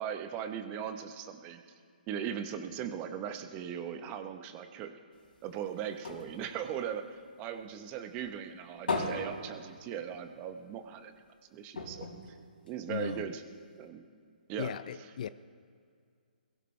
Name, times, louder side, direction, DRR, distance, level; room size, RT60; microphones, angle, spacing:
voice 1, 0.0-1.6 2.1-4.9 5.4-11.1 11.5-12.4 12.6-13.4 13.8-14.1 14.5-14.7, right 8 dB, 25° right, 1.0 m, -39 dB
sound 1, 5.1-7.8 8.2-10.4 10.7-10.8 11.1-11.3 11.7-13.2 13.9-14.0, left 3 dB, 75° left, 4.0 m, -39 dB
voice 2, 12.9-13.3 14.6-15.3, left 8 dB, 50° left, 0.5 m, -37 dB
21.5 x 17.0 x 3.3 m
figure-of-eight pair, 135°, 5 cm